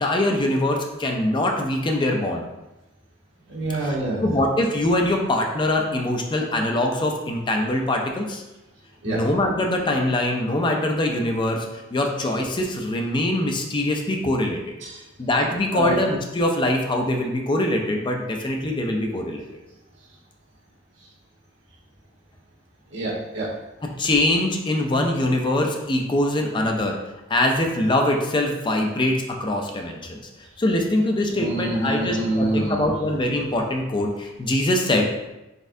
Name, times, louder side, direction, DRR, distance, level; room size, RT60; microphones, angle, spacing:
voice 1, 0.0-2.5 4.2-8.4 9.0-11.7 11.9-14.6 15.2-19.4 24.0-27.0 27.3-30.2 30.6-35.1, left 1 dB, 25° left, 2 dB, 0.5 m, -23 dB
voice 2, 3.5-4.3 9.0-9.2 14.8-15.0 15.7-16.0 22.9-23.5 31.3-32.9, right 2 dB, 85° right, -5 dB, 1.3 m, -26 dB
4.1 x 3.7 x 2.6 m, 0.99 s
head